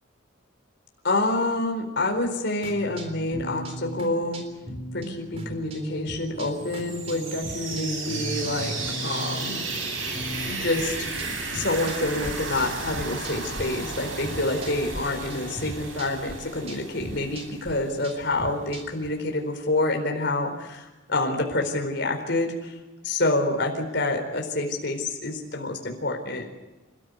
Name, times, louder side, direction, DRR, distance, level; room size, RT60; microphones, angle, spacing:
voice 1, 1.0-4.4 4.9-9.6 10.5-11.1 11.5-22.7 23.0-26.5, left 2 dB, 60° left, 3 dB, 4.3 m, -27 dB
sound 1, 2.6-13.7 13.9-15.0 15.3-19.1, right 1 dB, 30° right, 3.6 m, -38 dB
sound 2, 6.5-18.2, right 3 dB, 80° right, 6.9 m, -34 dB
28.5 x 14.0 x 8.2 m, 1.1 s
head